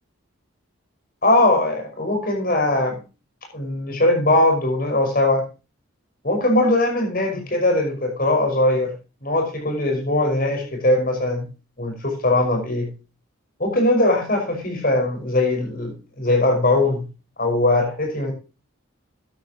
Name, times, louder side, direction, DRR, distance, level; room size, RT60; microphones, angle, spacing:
voice 1, 1.2-3.0 3.5-5.5 6.2-8.9 9.2-11.5 11.8-12.9 13.6-17.0 17.4-18.3, left 2 dB, 45° left, 3 dB, 5.5 m, -20 dB
13.0 x 12.0 x 3.0 m, 0.31 s
head